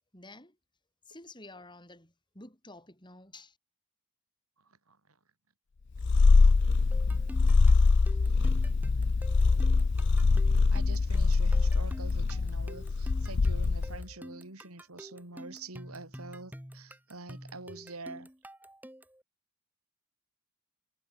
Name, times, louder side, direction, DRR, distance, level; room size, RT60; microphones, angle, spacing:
voice 1, 0.1-0.6 1.1-3.6, left 2 dB, 20° left, 7.7 m, -50 dB
voice 2, 4.6-5.0 8.2-8.7 10.7-18.3, right 3 dB, 80° right, 4.1 m, -46 dB
Purr, 6.0-14.0, left 4 dB, 55° left, 0.5 m, -24 dB
sound 1, 6.9-19.2, equal, 10° right, 7.0 m, -48 dB
head